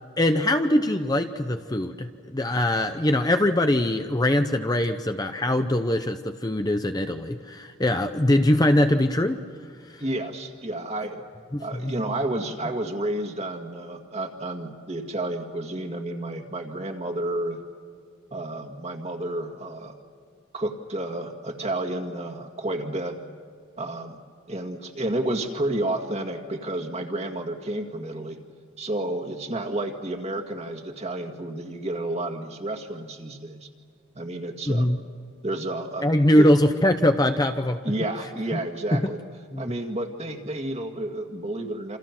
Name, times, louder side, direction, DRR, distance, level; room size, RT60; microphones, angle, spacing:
voice 1, 0.2-9.4 11.5-12.0 34.7-35.0 36.0-37.8 38.5-38.6 38.9-39.0 39.5-39.6, left 1 dB, 20° left, 7 dB, 0.8 m, -22 dB
voice 2, 10.0-11.2 11.6-17.6 18.3-19.9 20.5-23.2 23.8-24.2 24.5-28.4 28.8-33.7 34.2-34.9 35.4-36.5 37.8-39.2 39.6-42.0, right 1 dB, 30° right, 4 dB, 2.0 m, -31 dB
28.0 x 27.5 x 6.0 m, 2.1 s
head